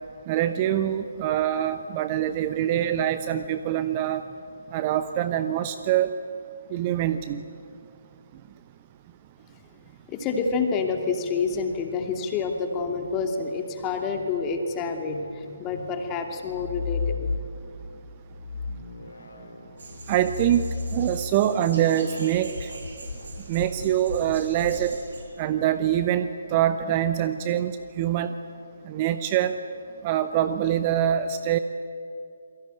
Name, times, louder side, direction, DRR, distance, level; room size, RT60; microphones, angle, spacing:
voice 1, 0.3-4.2 4.7-6.1 6.7-7.4 20.1-22.7 23.5-25.0 25.4-28.4 28.9-29.6 30.0-31.6, right 11 dB, 25° right, 11 dB, 0.8 m, -24 dB
voice 2, 10.1-17.3, left 4 dB, 15° left, 4 dB, 2.7 m, -28 dB
sound 1, 16.4-17.8 18.3-25.3, left 4 dB, 65° left, 3.2 m, -34 dB
sound 2, 19.8-25.2, right 3 dB, 55° right, 7.4 m, -44 dB
28.5 x 22.5 x 9.2 m, 2.5 s
figure-of-eight pair, 140°, 0 cm